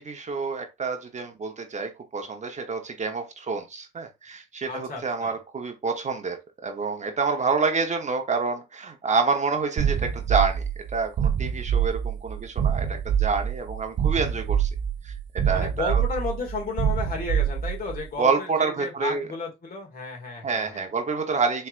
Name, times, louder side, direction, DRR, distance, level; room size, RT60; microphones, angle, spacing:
voice 1, 0.0-10.6 10.9-14.7 15.0-16.0 18.2-19.3 20.4-21.7, right 4 dB, 35° right, 0.9 m, -28 dB
voice 2, 4.7-5.4 15.5-20.9, left 4 dB, 45° left, 2.2 m, -33 dB
sound 1, 9.8-18.0, right 8 dB, 60° right, 0.8 m, -26 dB
4.4 x 3.3 x 2.5 m
cardioid pair, 90°, 20 cm